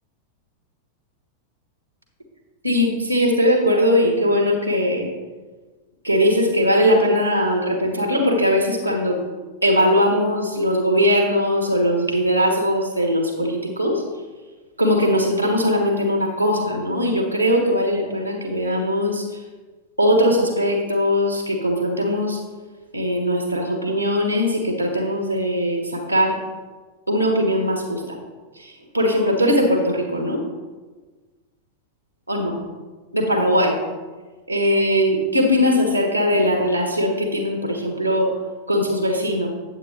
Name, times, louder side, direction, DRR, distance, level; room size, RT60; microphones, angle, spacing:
voice 1, 2.6-5.1 6.0-9.2 9.6-14.0 14.8-19.4 20.0-22.4 22.9-26.4 27.1-28.2 28.6-30.4 32.3-32.5 33.1-33.8 34.5-38.3 38.7-39.5, equal, 90° right, 2 dB, 1.2 m, -20 dB
9.0 x 8.1 x 3.2 m, 1.3 s
figure-of-eight pair, 90°, 0 cm